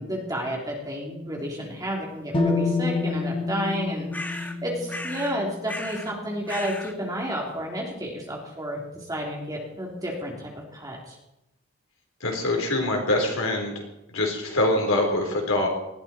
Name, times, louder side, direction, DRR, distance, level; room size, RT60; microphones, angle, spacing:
voice 1, 0.0-11.1, equal, 15° right, -1 dB, 3.3 m, -31 dB
sound 1, 2.3-6.3, left 3 dB, 25° left, 1.5 m, -28 dB
sound 2, 4.1-4.6 4.9-5.4 5.7-6.1 6.5-6.9, left 1 dB, 5° left, 0.7 m, -35 dB
voice 2, 12.2-13.7 14.1-15.7, left 2 dB, 70° left, 1 dB, 3.9 m, -24 dB
19.5 x 14.5 x 4.4 m, 0.90 s
head